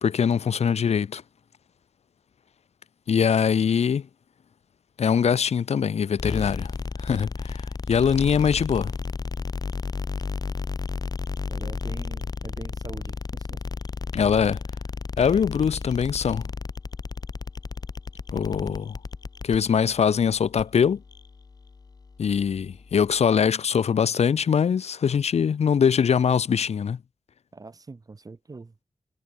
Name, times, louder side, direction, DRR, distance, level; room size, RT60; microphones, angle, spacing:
voice 1, 0.0-1.2 3.1-4.1 5.0-6.7 7.0-8.9 14.1-14.6 15.2-16.5 18.3-19.0 19.4-21.0 22.2-27.0, left 7 dB, 60° left, 0.9 m, -22 dB
sound 1, 6.2-23.2, left 4 dB, 30° left, 1.0 m, -34 dB
voice 2, 11.5-13.6 18.4-18.8 27.5-28.8, right 3 dB, 30° right, 4.6 m, -43 dB
wide cardioid pair, 170°, 12 cm